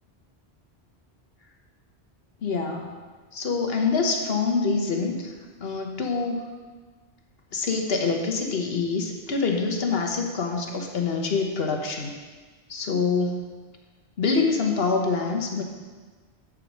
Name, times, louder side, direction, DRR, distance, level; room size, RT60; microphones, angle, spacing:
voice 1, 2.4-2.9 3.3-5.3 5.6-6.5 7.5-12.1 12.7-13.5 14.2-15.6, left 4 dB, 65° left, 2 dB, 1.2 m, -25 dB
8.4 x 4.8 x 6.2 m, 1.4 s
omnidirectional pair, 1.1 m